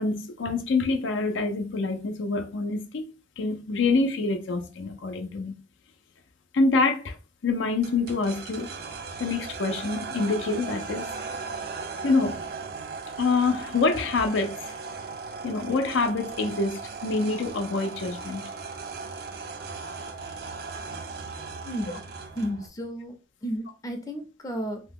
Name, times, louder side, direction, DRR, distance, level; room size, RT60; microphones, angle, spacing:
voice 1, 0.0-3.0 3.4-5.5 6.5-7.2 7.4-8.7 9.2-11.1 12.0-12.4 13.2-14.6 15.4-18.4, left 3 dB, 80° left, 0.5 m, -26 dB
sound 1, 7.8-22.7, right 4 dB, 55° right, 0.4 m, -37 dB
voice 2, 21.6-23.2 23.4-24.8, equal, 20° left, 0.5 m, -33 dB
2.8 x 2.1 x 3.5 m
head